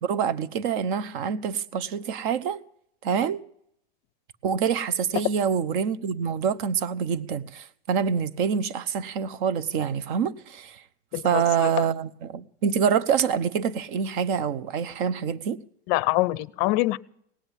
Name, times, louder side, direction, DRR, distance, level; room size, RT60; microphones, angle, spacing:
voice 1, 0.0-2.6 3.0-3.4 4.4-10.8 11.2-15.6, right 7 dB, 50° right, 1.0 m, -26 dB
voice 2, 11.1-11.7 15.9-17.0, left 19 dB, 35° left, 0.6 m, -25 dB
18.5 x 7.8 x 9.9 m
supercardioid pair, 145°, 32 cm